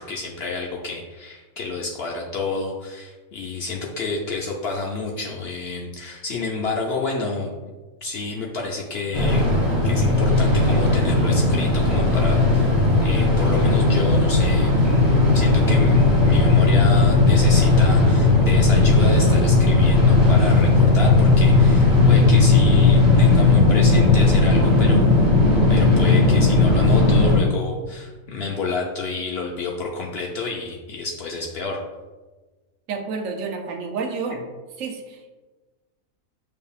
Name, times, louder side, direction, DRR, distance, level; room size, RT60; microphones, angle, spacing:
voice 1, 0.0-7.5 8.0-9.5 9.8-12.7 13.0-25.3 25.7-31.8, left 3 dB, 65° left, -1 dB, 0.6 m, -29 dB
sound 1, 9.1-27.4, left 3 dB, 20° right, 1.4 m, -16 dB
voice 2, 32.9-34.5 34.8-35.3, right 4 dB, 75° right, 3 dB, 1.0 m, -30 dB
6.8 x 2.7 x 2.3 m, 1.2 s
omnidirectional pair, 1.4 m